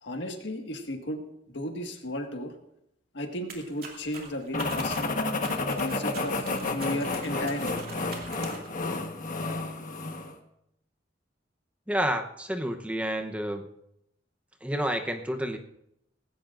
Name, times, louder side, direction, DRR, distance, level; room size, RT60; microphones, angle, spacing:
voice 1, 0.0-1.2 1.5-2.5 3.1-5.1 5.6-7.8, left 1 dB, 75° left, 4 dB, 1.7 m, -34 dB
sound 1, 3.5-8.8, right 3 dB, 55° right, 2.8 m, -44 dB
sound 2, 4.5-10.3, left 3 dB, 45° left, 1.3 m, -31 dB
voice 2, 11.9-13.7 14.6-15.6, equal, 5° right, 6 dB, 0.8 m, -29 dB
18.5 x 16.0 x 2.5 m, 0.80 s
head